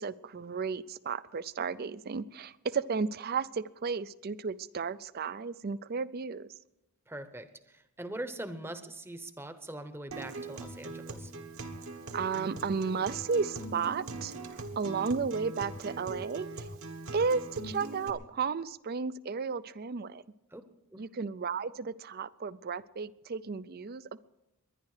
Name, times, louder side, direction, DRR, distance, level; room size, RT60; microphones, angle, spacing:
voice 1, 0.0-6.5 12.1-16.7 17.1-20.2 21.0-24.2, right 5 dB, 45° right, 18 dB, 0.4 m, -33 dB
voice 2, 7.1-11.3 20.5-20.6 20.9-21.0, right 1 dB, 10° right, 10 dB, 0.9 m, -42 dB
Acoustic guitar, 10.1-18.1, right 2 dB, 65° right, 1.6 m, -41 dB
22.0 x 10.5 x 4.9 m, 0.90 s
head